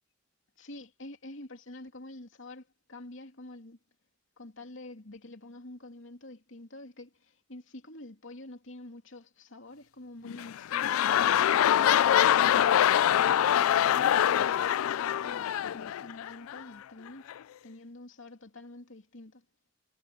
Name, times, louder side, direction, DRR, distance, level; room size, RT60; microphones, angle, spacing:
voice 1, 0.6-3.8 4.4-12.0 12.4-17.3 17.6-19.4, left 2 dB, 65° left, 2.7 m, -47 dB
sound 1, 10.3-16.6 17.3-17.4, left 10 dB, 85° left, 0.3 m, -24 dB
head